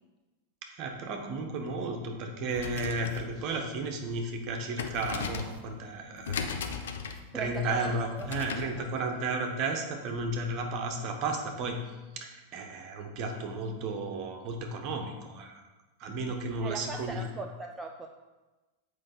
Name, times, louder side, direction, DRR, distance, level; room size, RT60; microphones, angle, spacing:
voice 1, 0.6-6.8 7.3-15.6 16.0-17.2, right 2 dB, 40° right, 4 dB, 1.1 m, -34 dB
sound 1, 2.4-8.8, left 5 dB, 60° left, 0.7 m, -38 dB
voice 2, 7.3-8.3 8.6-9.2 16.6-18.1, right 4 dB, 15° right, 3 dB, 0.5 m, -40 dB
7.7 x 4.8 x 4.2 m, 1.2 s
figure-of-eight pair, 90°, 0 cm